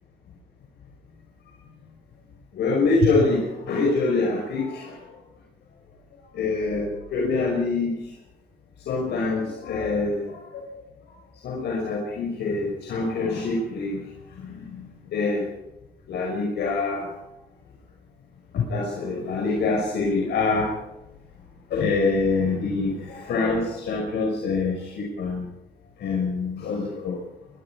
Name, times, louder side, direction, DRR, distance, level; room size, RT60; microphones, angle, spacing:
voice 1, 2.5-5.1 6.3-8.0 8.9-10.7 11.4-14.1 14.4-15.5 16.1-17.1 18.5-20.8 21.7-25.5 26.0-27.2, left 3 dB, 85° left, -2 dB, 5.8 m, -25 dB
25.0 x 21.0 x 5.0 m, 0.91 s
cardioid pair, 95°, 17 cm